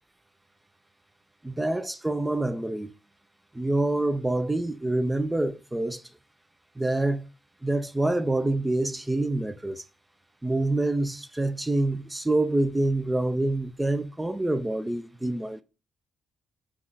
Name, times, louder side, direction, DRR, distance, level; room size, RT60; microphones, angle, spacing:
voice 1, 1.4-2.9 3.5-6.0 6.8-7.3 7.6-9.8 10.4-15.6, right 2 dB, 10° right, 0.4 m, -26 dB
5.4 x 2.4 x 3.2 m
cardioid pair, 115°, 0 cm